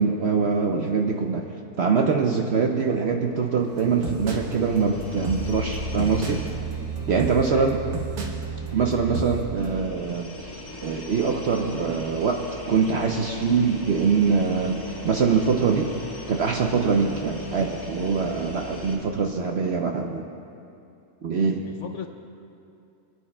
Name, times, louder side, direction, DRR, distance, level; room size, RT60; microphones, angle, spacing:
voice 1, 0.0-1.4 1.8-6.4 7.1-7.8 8.7-10.3 10.8-15.9 16.3-20.2 21.2-21.6, right 5 dB, 65° right, 2 dB, 0.7 m, -23 dB
sound 1, 3.0-19.0, left 2 dB, 15° left, 1.5 m, -40 dB
sound 2, 3.6-9.8, right 3 dB, 80° right, 1.7 m, -32 dB
voice 2, 7.4-8.0 21.7-22.1, left 6 dB, 65° left, 5 dB, 0.8 m, -38 dB
24.5 x 9.7 x 2.2 m, 2.6 s
omnidirectional pair, 1.6 m